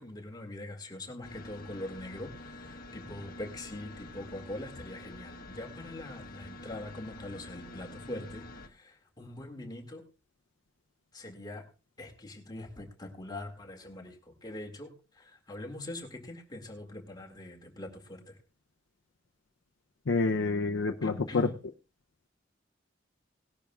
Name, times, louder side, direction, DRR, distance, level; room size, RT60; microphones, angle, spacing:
voice 1, 0.0-10.0 11.1-11.6 12.0-18.4 21.0-21.6, left 1 dB, 20° left, 2 dB, 2.1 m, -42 dB
sound 1, 1.2-8.7, left 2 dB, 50° left, 1.2 m, -47 dB
voice 2, 20.1-21.5, left 3 dB, 80° left, 4 dB, 0.6 m, -28 dB
18.5 x 12.0 x 2.3 m, 0.31 s
head